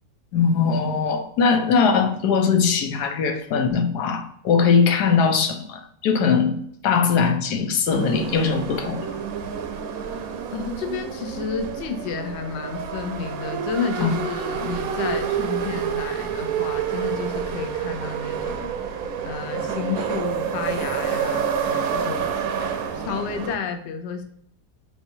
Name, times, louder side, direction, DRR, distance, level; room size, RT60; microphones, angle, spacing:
voice 1, 0.3-6.6 6.8-9.2 14.0-14.1, left 5 dB, 85° left, 6 dB, 1.3 m, -21 dB
sound 1, 7.9-23.6, right 7 dB, 75° right, 1.0 m, -28 dB
voice 2, 10.5-18.8 19.2-22.3 22.6-24.2, left 5 dB, 60° left, 7 dB, 0.7 m, -31 dB
4.8 x 3.5 x 2.7 m, 0.68 s
omnidirectional pair, 1.7 m